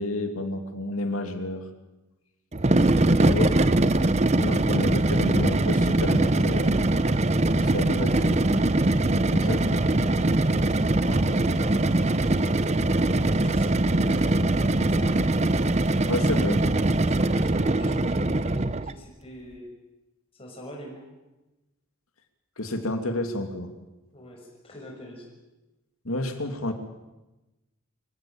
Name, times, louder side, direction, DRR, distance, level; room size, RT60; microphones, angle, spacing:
voice 1, 0.0-1.6 3.2-3.5 4.4-6.9 7.5-8.4 9.3-9.6 16.1-16.6 22.6-23.7 26.0-26.7, left 1 dB, 85° left, 6 dB, 2.8 m, -30 dB
sound 1, 2.5-19.0, right 2 dB, 30° right, 0.7 m, -22 dB
voice 2, 7.6-8.5 9.3-12.4 13.2-15.2 17.0-19.7 20.4-21.1 24.1-25.3, equal, 25° left, 0 dB, 6.1 m, -43 dB
25.0 x 16.0 x 8.9 m, 1.0 s
head